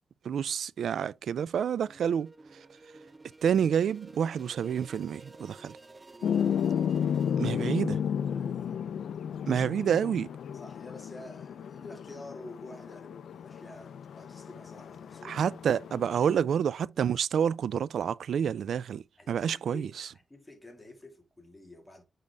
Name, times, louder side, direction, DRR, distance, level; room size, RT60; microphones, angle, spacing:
voice 1, 0.2-2.3 3.4-5.8 7.4-8.0 9.5-10.3 15.2-19.9, right 8 dB, 75° right, 0.3 m, -28 dB
sound 1, 1.8-7.8, right 3 dB, 20° right, 0.5 m, -52 dB
sound 2, 6.2-16.4, left 8 dB, 85° left, 0.4 m, -33 dB
voice 2, 8.3-8.8 9.5-9.6 10.5-15.8 19.2-22.0, left 2 dB, 15° left, 2.0 m, -49 dB
7.5 x 5.3 x 3.4 m
wide cardioid pair, 145°, 0 cm